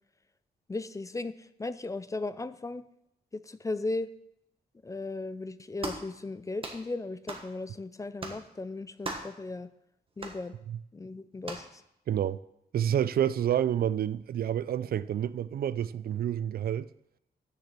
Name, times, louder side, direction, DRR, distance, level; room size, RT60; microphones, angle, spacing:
voice 1, 0.7-2.8 3.3-4.1 4.8-9.7 10.2-10.5 10.9-11.8, left 3 dB, 20° left, 0.4 m, -36 dB
sound 1, 5.8-6.1 6.6-6.8 7.3-7.5 8.2-8.4 9.0-9.4 10.2-10.4 11.4-11.7, right 2 dB, 30° right, 1.3 m, -38 dB
voice 2, 12.1-12.4 12.7-16.9, right 10 dB, 65° right, 0.4 m, -29 dB
7.0 x 6.7 x 7.5 m
wide cardioid pair, 120°, 17 cm